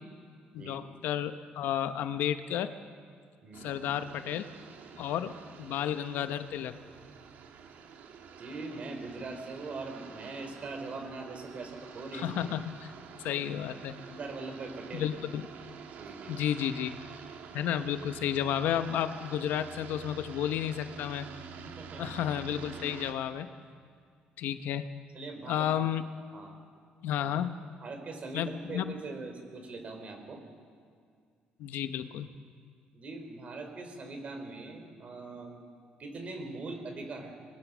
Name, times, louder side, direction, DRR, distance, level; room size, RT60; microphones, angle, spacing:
voice 1, 0.5-2.7 3.6-4.5 5.0-6.8 12.1-12.9 13.2-14.0 14.9-15.4 16.3-16.9 17.5-21.3 22.0-23.5 24.4-24.8 25.5-26.0 27.0-27.5 28.3-28.9 31.6-32.3, left 10 dB, 85° left, 10 dB, 1.0 m, -32 dB
voice 2, 3.4-3.7 8.4-12.3 14.1-15.1 16.0-16.4 21.6-22.1 25.1-25.7 26.3-26.5 27.8-30.4 32.9-35.6 36.0-37.4, right 3 dB, 45° right, 5 dB, 4.2 m, -41 dB
sound 1, 3.5-23.1, right 6 dB, 70° right, 2.1 m, -48 dB
24.0 x 20.5 x 6.3 m, 2.2 s
cardioid pair, 120°, 3 cm